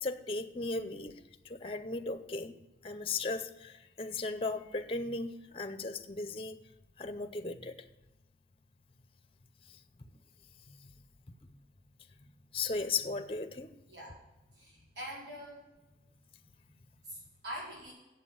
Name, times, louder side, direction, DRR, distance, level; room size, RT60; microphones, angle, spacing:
voice 1, 0.0-1.2 1.4-2.5 2.8-6.6 7.0-7.7 12.5-13.7, left 3 dB, 30° left, 9 dB, 0.6 m, -36 dB
voice 2, 13.9-14.2 14.5-15.6 17.0-17.9, equal, 80° right, -6 dB, 4.5 m, -44 dB
7.9 x 7.3 x 8.5 m, 1.1 s
head